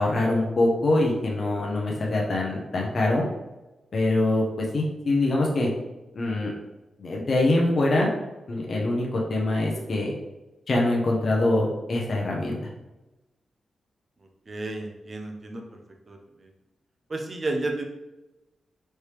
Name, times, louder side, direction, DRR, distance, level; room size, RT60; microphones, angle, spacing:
voice 1, 0.0-3.2 3.9-5.7 6.1-6.5 7.0-8.1 8.5-10.1 10.7-12.6, left 2 dB, 40° left, -2 dB, 0.7 m, -24 dB
voice 2, 14.5-15.8 16.1-16.5 17.1-17.8, right 2 dB, 30° right, 2 dB, 0.6 m, -32 dB
4.3 x 3.3 x 3.3 m, 1.0 s
wide cardioid pair, 170°, 0 cm